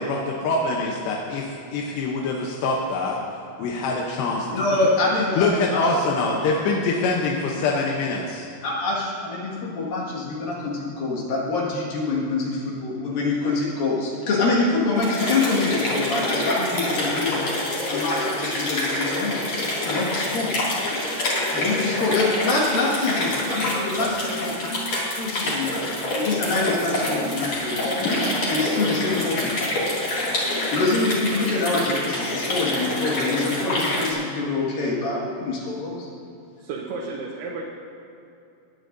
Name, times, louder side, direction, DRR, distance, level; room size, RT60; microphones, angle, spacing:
voice 1, 0.1-3.2 3.6-4.5 5.4-8.5, left 3 dB, 80° left, -1 dB, 3.0 m, -24 dB
voice 2, 4.5-5.8 8.6-19.4 19.8-20.5 21.5-24.5 25.1-25.8 26.1-27.9 28.5-29.6 30.7-36.1, left 3 dB, 60° left, -4 dB, 3.3 m, -25 dB
sound 1, 15.0-34.1, left 1 dB, 40° left, 3.0 m, -26 dB
voice 3, 36.6-37.6, right 4 dB, 75° right, -3 dB, 2.8 m, -33 dB
19.0 x 10.0 x 2.6 m, 2.6 s
omnidirectional pair, 4.9 m